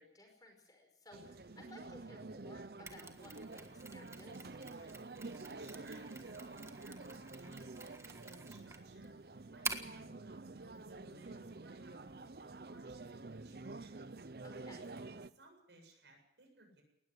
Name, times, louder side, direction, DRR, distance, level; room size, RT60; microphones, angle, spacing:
voice 1, 0.0-4.9 14.4-14.9, left 2 dB, 20° left, 3 dB, 5.1 m, -58 dB
sound 1, 1.1-15.3, right 3 dB, 60° right, 0.7 m, -49 dB
Mechanisms, 2.9-10.0, right 4 dB, 15° right, 1.5 m, -48 dB
voice 2, 5.3-14.0 14.4-16.8, right 2 dB, 85° right, 3 dB, 7.7 m, -62 dB
19.5 x 14.0 x 9.7 m, 0.88 s
head